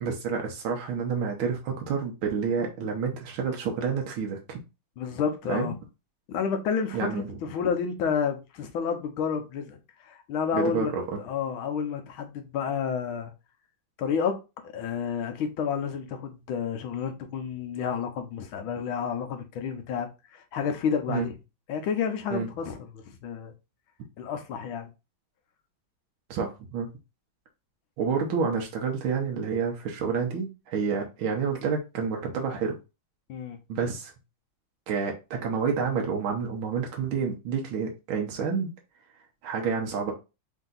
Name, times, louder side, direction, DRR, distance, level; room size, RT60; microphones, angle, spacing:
voice 1, 0.0-4.6 5.5-5.8 6.9-7.3 10.5-11.2 21.1-21.3 22.3-22.5 26.3-26.9 28.0-32.8 33.7-34.1 34.9-38.7 39.4-40.1, right 6 dB, 85° right, 1.7 m, -29 dB
voice 2, 5.0-5.7 6.3-10.9 11.2-13.3 14.0-14.4 14.7-21.3 21.7-23.5 24.2-24.9 33.3-33.6, left 6 dB, 90° left, 1.6 m, -30 dB
4.5 x 2.7 x 3.9 m
omnidirectional pair, 2.2 m